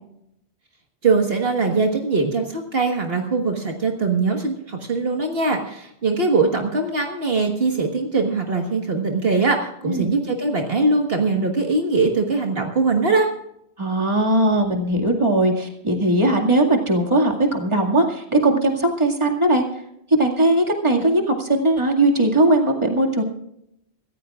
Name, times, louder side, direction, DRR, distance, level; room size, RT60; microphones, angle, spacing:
voice 1, 1.0-13.3, right 3 dB, 60° right, 2 dB, 1.7 m, -21 dB
voice 2, 13.8-19.6 20.1-23.2, right 1 dB, 25° right, 1 dB, 2.2 m, -19 dB
25.5 x 14.5 x 2.4 m, 0.78 s
omnidirectional pair, 1.1 m